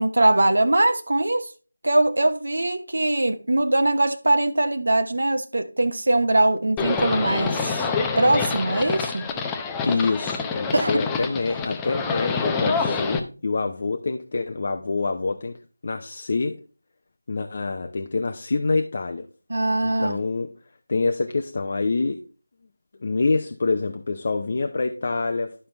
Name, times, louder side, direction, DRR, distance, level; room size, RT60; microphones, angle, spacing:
voice 1, 0.0-1.5 1.8-7.9 8.2-9.3 10.7-11.0 19.5-20.2, right 2 dB, 60° right, 0.9 m, -21 dB
Livestock farm animals working animals, 6.8-13.2, left 5 dB, 10° left, 0.6 m, -26 dB
voice 2, 9.8-15.6 15.8-16.6 17.3-19.3 19.8-20.5 20.9-22.2 23.0-25.5, left 3 dB, 40° left, 0.7 m, -26 dB
11.5 x 5.5 x 3.2 m
figure-of-eight pair, 165°, 0 cm